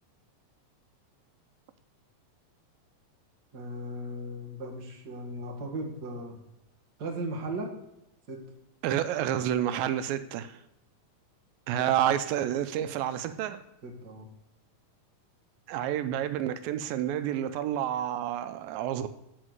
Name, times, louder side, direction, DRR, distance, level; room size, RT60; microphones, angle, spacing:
voice 1, 3.5-6.4 7.0-7.8 8.3-8.4 11.8-11.9 12.8-12.9 13.8-14.3, right 1 dB, 35° right, 1.9 m, -37 dB
voice 2, 8.8-10.6 11.7-13.6 15.7-19.1, right 11 dB, 90° right, 2.4 m, -29 dB
12.5 x 4.9 x 8.0 m
omnidirectional pair, 4.0 m